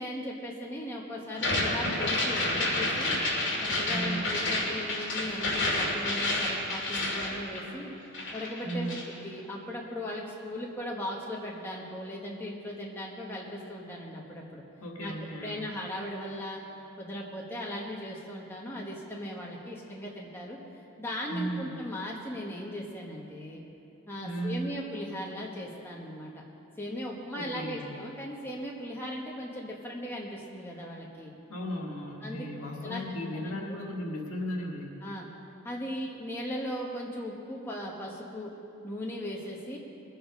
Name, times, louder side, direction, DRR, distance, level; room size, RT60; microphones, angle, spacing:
voice 1, 0.0-3.2 3.6-7.9 8.3-9.0 9.2-14.6 15.0-15.1 15.4-16.6 17.0-20.6 21.0-23.6 24.1-26.3 26.8-31.3 32.2-32.5 32.8-33.0 33.3-33.6 35.0-35.3 35.6-38.5 38.8-39.8, left 1 dB, 10° left, -3 dB, 1.3 m, -38 dB
sound 1, 1.3-7.9 8.1-9.1, left 2 dB, 55° left, 2.3 m, -29 dB
voice 2, 3.9-4.2 8.6-9.0 14.8-15.6 21.3-21.7 24.2-24.7 27.3-27.9 31.5-35.0, equal, 80° left, 0 dB, 2.0 m, -35 dB
21.5 x 7.9 x 5.3 m, 2.9 s
head